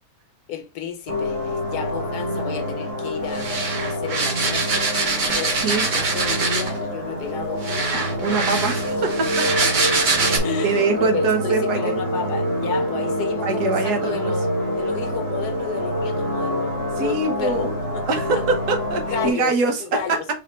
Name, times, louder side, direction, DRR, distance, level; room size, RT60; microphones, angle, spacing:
voice 1, 0.5-3.6 3.8-9.0 9.4-9.5 10.4-18.4 19.1-20.3, left 8 dB, 85° left, 1.3 m, -33 dB
sound 1, 1.1-19.3, equal, 25° right, 1.1 m, -26 dB
sound 2, 3.3-6.8 7.6-10.4, right 3 dB, 40° right, 0.7 m, -24 dB
voice 2, 5.5-5.8 8.2-9.7 10.1-12.0 13.4-14.3 17.0-17.7 18.1-19.8, right 4 dB, 85° right, 1.6 m, -24 dB
4.7 x 3.0 x 3.3 m
omnidirectional pair, 1.7 m